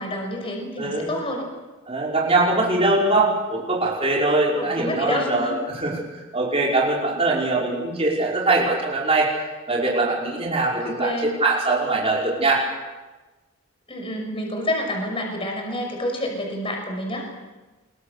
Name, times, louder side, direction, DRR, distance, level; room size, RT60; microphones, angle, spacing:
voice 1, 0.0-1.5 4.5-5.6 10.8-11.4 13.9-17.5, left 1 dB, 25° left, 2 dB, 5.9 m, -28 dB
voice 2, 0.8-1.1 1.9-6.0 6.3-9.3 9.7-12.6, right 2 dB, 25° right, -4 dB, 5.2 m, -22 dB
27.0 x 23.5 x 6.7 m, 1.2 s
head